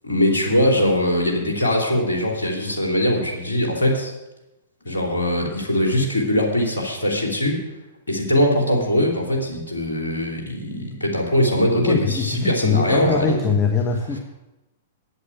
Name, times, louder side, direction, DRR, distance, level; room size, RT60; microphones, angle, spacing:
voice 1, 0.0-4.1 4.8-7.6 8.1-13.4, left 1 dB, 75° left, 0 dB, 3.3 m, -21 dB
voice 2, 11.8-14.2, left 5 dB, 20° left, 3 dB, 1.2 m, -22 dB
8.3 x 8.1 x 8.8 m, 0.98 s
figure-of-eight pair, 105°, 0 cm